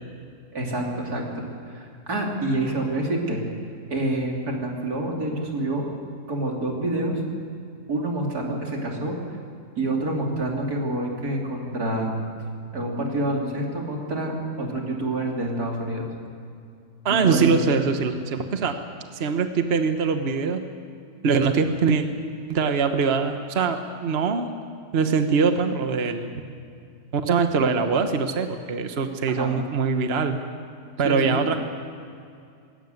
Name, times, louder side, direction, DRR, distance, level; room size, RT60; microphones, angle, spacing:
voice 1, 0.5-3.4 3.9-5.9 6.3-7.2 7.9-9.2 9.8-12.2 12.7-16.1 17.1-17.5 29.4-29.5 31.0-31.3, right 2 dB, 85° right, 0 dB, 3.8 m, -27 dB
voice 2, 17.0-18.8 19.1-20.6 21.2-22.0 22.5-24.5 24.9-26.3 27.1-30.4 31.0-31.6, right 5 dB, 45° right, 7 dB, 1.3 m, -23 dB
20.5 x 17.0 x 9.5 m, 2.4 s
omnidirectional pair, 1.6 m